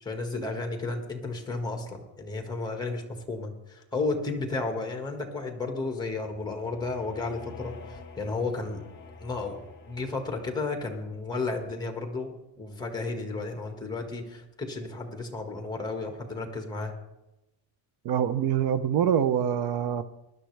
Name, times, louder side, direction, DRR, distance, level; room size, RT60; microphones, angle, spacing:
voice 1, 0.0-8.8 9.2-9.6 9.9-16.9, left 3 dB, 10° left, 4 dB, 1.6 m, -33 dB
sound 1, 6.2-10.8, left 3 dB, 25° left, 1.9 m, -48 dB
voice 2, 18.0-20.0, right 9 dB, 60° right, 13 dB, 0.7 m, -25 dB
19.0 x 12.0 x 3.3 m, 0.97 s
cardioid pair, 165°, 41 cm